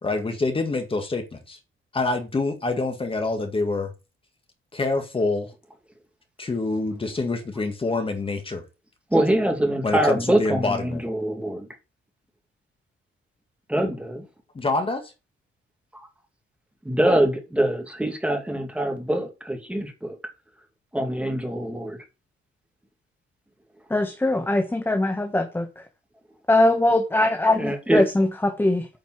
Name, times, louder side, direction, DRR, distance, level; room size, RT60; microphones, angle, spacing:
voice 1, 0.0-1.6 1.9-3.9 4.7-5.5 6.4-8.6 9.8-11.0 14.6-15.1, left 3 dB, 25° left, 2.0 m, -26 dB
voice 2, 9.1-11.7 13.7-14.2 15.9-16.1 16.8-20.2 20.9-22.0 27.6-28.0, right 1 dB, 5° right, 2.4 m, -24 dB
voice 3, 23.9-25.7 26.5-28.9, left 2 dB, 10° left, 1.3 m, -21 dB
9.2 x 5.3 x 6.2 m
cardioid pair, 135°, 21 cm